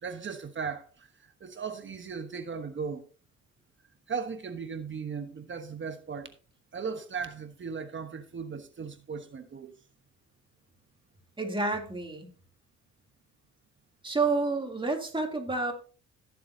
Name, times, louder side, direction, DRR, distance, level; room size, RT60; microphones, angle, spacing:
voice 1, 0.0-3.0 4.1-6.3 6.7-9.7, right 5 dB, 40° right, 1.2 m, -37 dB
voice 2, 11.4-12.3 14.0-15.7, right 3 dB, 15° right, 3.0 m, -29 dB
15.5 x 7.2 x 2.8 m
cardioid pair, 90°, 30 cm